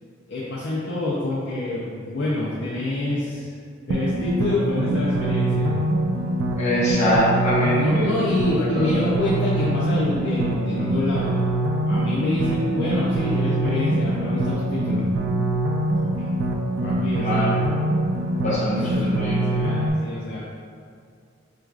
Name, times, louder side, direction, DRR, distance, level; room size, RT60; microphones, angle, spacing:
voice 1, 0.3-3.5 3.9-5.7 7.7-11.4 11.9-15.1 16.0-16.3 16.8-17.7 18.7-20.4, left 2 dB, 65° left, -7 dB, 0.5 m, -27 dB
sound 1, 3.9-19.9, right 1 dB, 75° right, 0.3 m, -24 dB
voice 2, 6.6-8.1 8.5-9.0 17.2-17.7 18.4-19.4, equal, 40° left, -10 dB, 1.1 m, -23 dB
4.5 x 2.3 x 2.4 m, 2.2 s
head